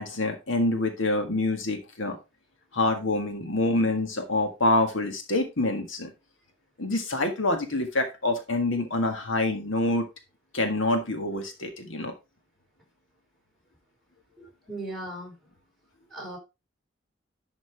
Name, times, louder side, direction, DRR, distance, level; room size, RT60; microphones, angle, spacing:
voice 1, 0.0-2.2 2.7-6.1 6.8-10.0 10.5-12.1, left 2 dB, 75° left, 5 dB, 1.7 m, -26 dB
voice 2, 14.4-15.5 16.1-16.4, right 1 dB, ahead, -2 dB, 5.0 m, -38 dB
11.5 x 5.8 x 3.5 m, 0.26 s
head